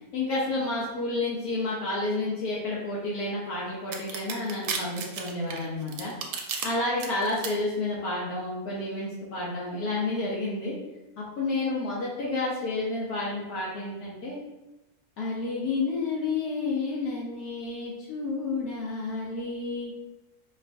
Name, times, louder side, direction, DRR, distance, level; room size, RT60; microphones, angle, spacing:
voice 1, 0.1-6.1 6.6-10.8 11.2-14.4 15.2-19.9, left 2 dB, 75° left, -6 dB, 1.2 m, -30 dB
sound 1, 3.9-6.7 7.0-7.5, right 6 dB, 75° right, 1.0 m, -33 dB
4.4 x 2.4 x 2.5 m, 0.99 s
omnidirectional pair, 1.6 m